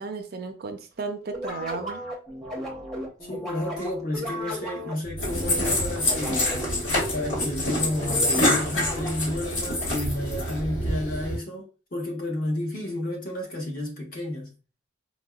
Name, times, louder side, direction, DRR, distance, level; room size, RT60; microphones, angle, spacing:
voice 1, 0.0-2.0, right 4 dB, 50° right, 0.4 m, -34 dB
sound 1, 1.3-9.4, equal, ahead, 0.7 m, -36 dB
voice 2, 3.2-6.7 7.1-14.6, left 1 dB, 45° left, 1.0 m, -31 dB
sound 2, 5.2-11.4, left 1 dB, 70° left, 1.4 m, -26 dB
4.4 x 2.1 x 2.2 m
head